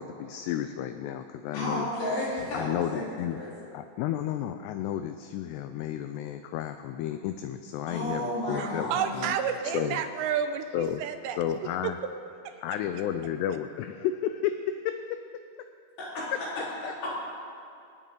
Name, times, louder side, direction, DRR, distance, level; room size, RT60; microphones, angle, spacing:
voice 1, 0.0-1.9 2.5-3.4 3.7-8.9 9.7-10.0 10.7-11.0 11.4-12.0 12.6-14.9 16.8-16.9, left 10 dB, 85° left, 8 dB, 2.4 m, -32 dB
voice 2, 1.5-3.5 7.9-9.3 16.0-16.4 16.8-17.2, left 1 dB, 60° left, -8 dB, 5.9 m, -32 dB
voice 3, 8.6-11.4 11.8-11.9 12.4-12.6, right 8 dB, 85° right, 7 dB, 2.7 m, -30 dB
26.5 x 9.2 x 3.9 m, 2.5 s
omnidirectional pair, 5.3 m